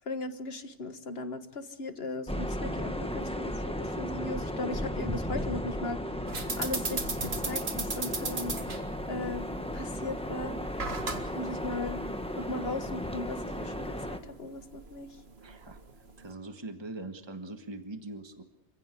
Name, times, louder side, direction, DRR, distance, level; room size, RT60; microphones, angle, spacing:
voice 1, 0.1-8.6 9.1-9.4 9.7-10.6 11.3-12.0 12.4-15.1, left 2 dB, 65° left, 10 dB, 1.8 m, -37 dB
sound 1, 2.3-14.2, equal, 5° left, 1.5 m, -35 dB
sound 2, 6.3-16.3, right 3 dB, 65° right, 2.2 m, -38 dB
voice 2, 15.4-15.8 16.2-18.4, right 2 dB, 25° right, 7 dB, 1.5 m, -42 dB
28.0 x 16.0 x 8.4 m, 0.81 s
omnidirectional pair, 1.1 m